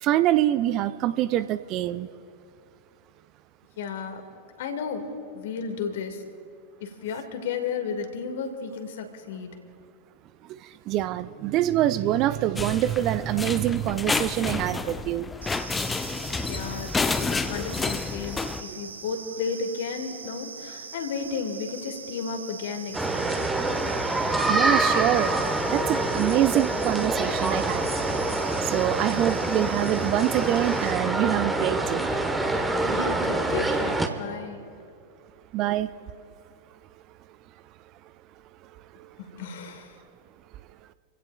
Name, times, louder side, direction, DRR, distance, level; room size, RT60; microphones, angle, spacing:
voice 1, 0.0-2.1 10.9-15.3 24.5-25.3 25.7-27.9 28.7-32.1 35.5-35.9 39.0-39.1, right 13 dB, 40° right, 14 dB, 0.4 m, -25 dB
voice 2, 3.8-4.3 4.6-6.3 6.8-9.5 16.4-23.4 32.8-34.6 39.2-40.0, left 5 dB, 55° left, 6 dB, 1.9 m, -33 dB
sound 1, 12.6-18.6, left 4 dB, 10° left, 0.6 m, -30 dB
sound 2, 15.4-30.9, right 5 dB, 70° right, 0.9 m, -42 dB
sound 3, 22.9-34.1, right 2 dB, 10° right, 1.2 m, -26 dB
28.0 x 16.0 x 2.3 m, 2.4 s
figure-of-eight pair, 90°, 0 cm